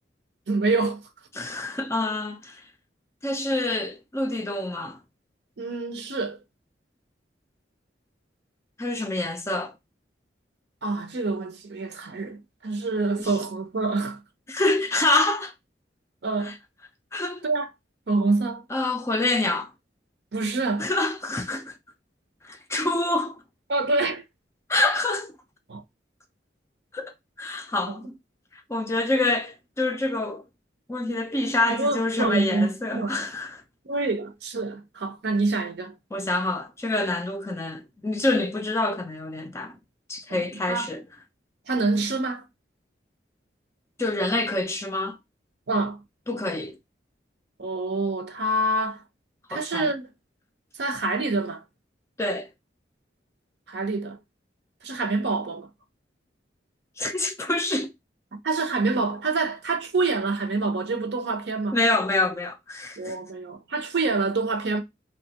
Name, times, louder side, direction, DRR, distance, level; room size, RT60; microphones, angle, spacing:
voice 1, 0.5-1.0 5.6-6.4 10.8-14.2 16.2-16.5 17.4-17.7 18.1-18.6 20.3-20.9 23.7-24.2 25.7-25.8 27.9-28.0 31.7-33.2 33.9-35.9 40.3-40.9 41.7-42.4 45.7-46.0 47.6-49.0 49.5-50.0 50.8-51.6 53.7-54.2 54.8-55.7 58.3-61.8 63.0-64.8, right 3 dB, 70° right, 0.6 m, -26 dB
voice 2, 1.4-2.6 3.2-5.0 8.8-9.7 13.2-13.3 14.5-15.5 16.4-16.5 17.1-17.4 18.7-19.7 20.8-21.7 22.4-23.4 24.7-25.3 26.9-27.1 27.4-28.1 28.7-30.4 30.9-33.6 36.1-39.8 40.1-41.0 44.0-45.2 46.3-46.8 49.5-49.9 52.2-52.5 57.0-57.9 61.7-63.1, left 2 dB, 15° left, 0.4 m, -26 dB
2.9 x 2.2 x 2.7 m
head